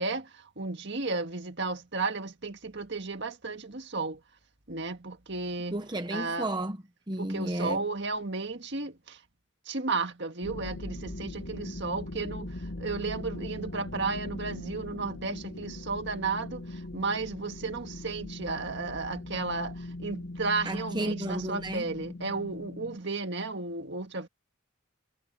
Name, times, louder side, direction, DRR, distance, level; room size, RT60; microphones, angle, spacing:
voice 1, 0.0-4.2 4.7-5.8 6.1-6.5 7.2-9.2 9.7-24.3, right 3 dB, 55° right, 1.9 m, -33 dB
voice 2, 5.7-7.8 20.6-21.9, right 1 dB, 20° right, 0.9 m, -33 dB
sound 1, 10.4-23.0, left 1 dB, 65° left, 1.4 m, -40 dB
head